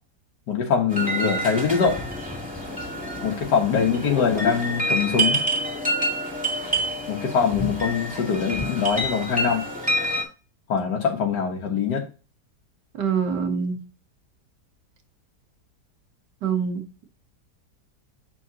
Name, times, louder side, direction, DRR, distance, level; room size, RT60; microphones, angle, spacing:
voice 1, 0.5-2.0 3.2-5.4 7.1-9.6 10.7-12.0, left 6 dB, 75° left, 1.7 m, -23 dB
sound 1, 0.9-10.2, right 1 dB, 5° right, 1.9 m, -27 dB
voice 2, 13.0-13.8 16.4-16.8, right 6 dB, 85° right, 1.8 m, -24 dB
7.7 x 5.8 x 2.8 m
omnidirectional pair, 1.8 m